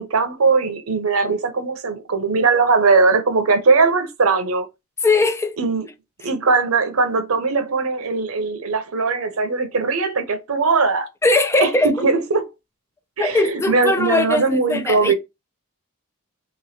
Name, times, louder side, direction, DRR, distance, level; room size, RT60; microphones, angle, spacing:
voice 1, 0.0-4.7 5.6-5.9 6.2-11.1 11.6-12.5 13.2-15.1, right 4 dB, 70° right, 0.8 m, -19 dB
voice 2, 5.0-5.6 11.2-11.9 13.2-15.1, left 2 dB, 10° left, 0.3 m, -19 dB
3.2 x 3.1 x 4.2 m
head